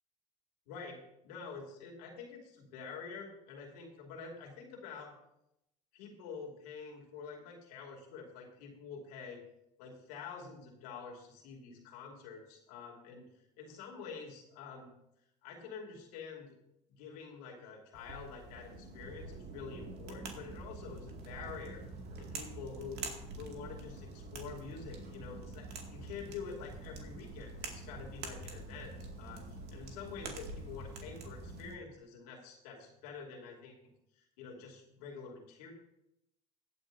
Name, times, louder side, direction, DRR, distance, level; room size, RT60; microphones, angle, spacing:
voice 1, 0.7-5.2 5.9-9.4 9.8-13.3 13.6-14.9 15.4-16.6 16.9-21.8 22.2-23.1 23.4-33.7 34.1-35.7, left 5 dB, 85° left, 0 dB, 2.7 m, -47 dB
sound 1, 17.9-31.8, right 3 dB, 60° right, 2.2 m, -46 dB
15.5 x 9.5 x 2.7 m, 0.83 s
supercardioid pair, 85°, 19 cm